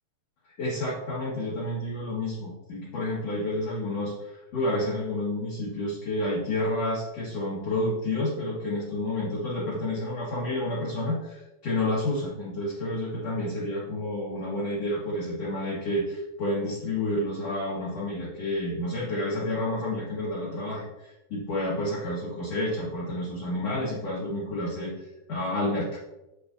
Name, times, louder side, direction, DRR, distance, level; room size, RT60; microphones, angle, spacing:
voice 1, 0.6-26.0, left 1 dB, 55° left, -7 dB, 2.0 m, -30 dB
8.7 x 7.8 x 2.7 m, 1.0 s
omnidirectional pair, 4.8 m